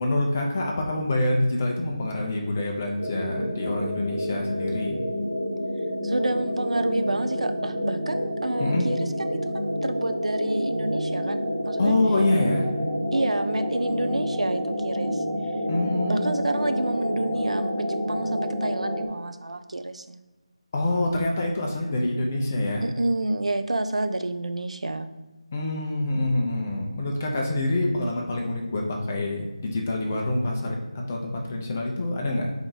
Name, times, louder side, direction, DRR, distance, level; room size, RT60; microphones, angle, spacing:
voice 1, 0.0-5.0 8.6-8.9 11.8-12.6 15.7-16.2 20.7-22.8 25.5-30.8 31.1-32.5, left 2 dB, 20° left, 0 dB, 0.4 m, -26 dB
sound 1, 3.0-19.1, equal, 20° right, 0.7 m, -28 dB
voice 2, 6.0-12.0 13.1-15.2 16.1-20.2 22.8-25.1, right 2 dB, 90° right, 9 dB, 0.4 m, -29 dB
4.4 x 2.6 x 3.7 m, 1.1 s
figure-of-eight pair, 175°, 3 cm